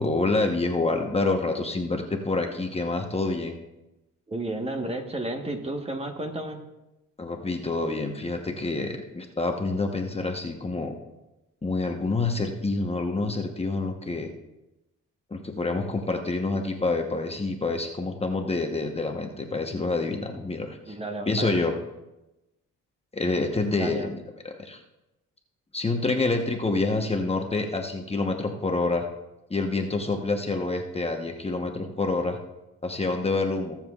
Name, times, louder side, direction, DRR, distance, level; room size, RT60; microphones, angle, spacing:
voice 1, 0.0-3.6 7.2-10.9 11.6-14.3 15.3-21.0 21.3-21.7 23.1-24.2 24.6-24.8 25.7-29.0 29.5-32.4 32.8-33.8, left 3 dB, 20° left, 3 dB, 1.0 m, -27 dB
voice 2, 4.3-6.6 20.9-21.6 23.8-24.1, right 1 dB, 20° right, 4 dB, 1.2 m, -32 dB
20.5 x 7.3 x 2.4 m, 0.98 s
cardioid pair, 90°, 30 cm